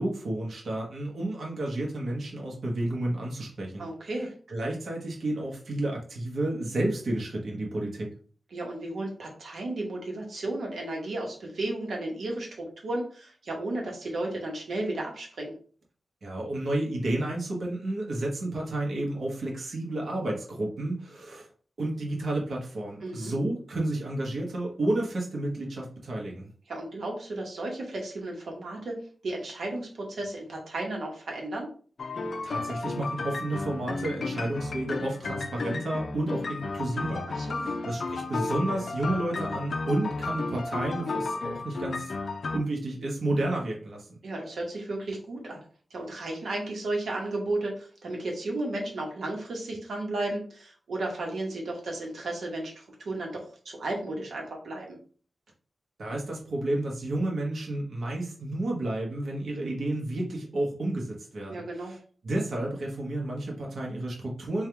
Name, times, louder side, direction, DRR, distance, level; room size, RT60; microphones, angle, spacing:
voice 1, 0.0-3.9 4.5-8.1 16.2-21.5 21.8-26.5 32.4-37.3 37.6-42.1 42.5-44.2 56.0-61.9 62.2-64.7, right 1 dB, 65° right, -2 dB, 1.0 m, -31 dB
voice 2, 3.8-4.3 8.5-15.5 23.0-23.4 26.7-29.0 29.2-31.7 37.3-37.7 44.2-45.6 45.9-55.0 61.5-62.0, right 2 dB, 90° right, -1 dB, 1.0 m, -34 dB
sound 1, 32.0-42.6, left 3 dB, 60° left, 0.4 m, -33 dB
3.4 x 2.3 x 4.4 m, 0.43 s
wide cardioid pair, 145°, 0 cm